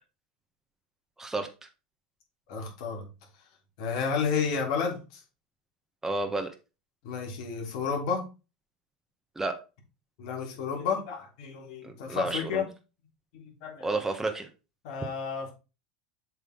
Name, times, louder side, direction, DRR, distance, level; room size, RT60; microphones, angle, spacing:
voice 1, 2.5-3.1 3.8-5.2 7.0-8.3 10.2-12.7 13.3-14.0 14.8-15.5, left 6 dB, 65° left, 1 dB, 3.2 m, -31 dB
voice 2, 6.0-6.5 9.3-9.5 11.8-12.6 13.8-14.5, right 2 dB, 10° right, 4 dB, 1.3 m, -31 dB
7.7 x 5.0 x 4.0 m, 0.30 s
hypercardioid pair, 85°, 4 cm